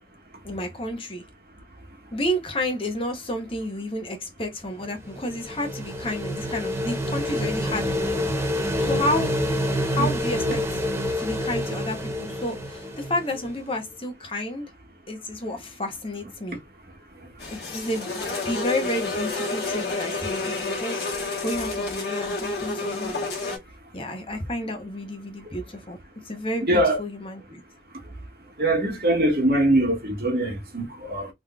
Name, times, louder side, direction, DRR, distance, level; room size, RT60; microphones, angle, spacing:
voice 1, 0.4-1.2 2.1-8.3 8.8-9.3 9.9-10.6 11.2-14.7 15.1-16.6 17.5-21.1 21.4-23.1 23.9-26.0 26.2-27.6, left 1 dB, 30° left, 0.9 m, -31 dB
sound 1, 4.8-13.6, equal, 15° right, 0.8 m, -27 dB
sound 2, 17.4-23.6, left 3 dB, 70° left, 1.7 m, -29 dB
voice 2, 26.6-27.0 28.6-31.3, right 1 dB, 55° right, 1.4 m, -22 dB
3.7 x 3.2 x 2.3 m
head